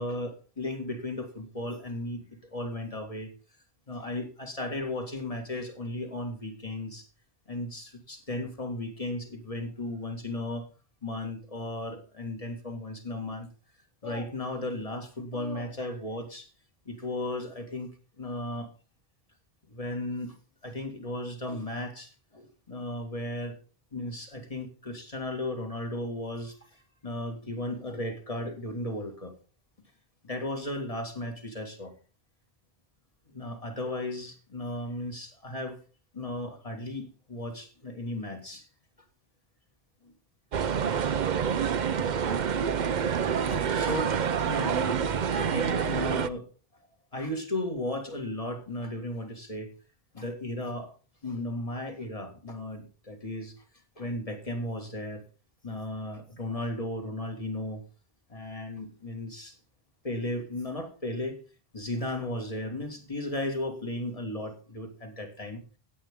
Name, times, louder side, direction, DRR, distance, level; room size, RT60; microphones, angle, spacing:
voice 1, 0.0-3.3 3.9-7.1 7.5-10.7 11.0-13.5 14.0-16.5 16.9-17.9 18.2-18.7 19.7-20.4 20.6-23.6 23.9-29.3 30.2-31.9 33.3-35.8 36.1-38.7 40.0-40.1 40.6-40.7 43.4-45.0 45.3-46.5 47.1-49.7 50.1-51.0 51.2-53.5 54.0-55.3 55.6-57.8 58.3-59.6 60.0-61.4 61.7-65.6, left 1 dB, 35° left, 4 dB, 2.2 m, -35 dB
sound 1, 40.5-46.3, right 7 dB, 50° right, 0.7 m, -27 dB
16.5 x 8.4 x 3.7 m, 0.34 s
omnidirectional pair, 1.0 m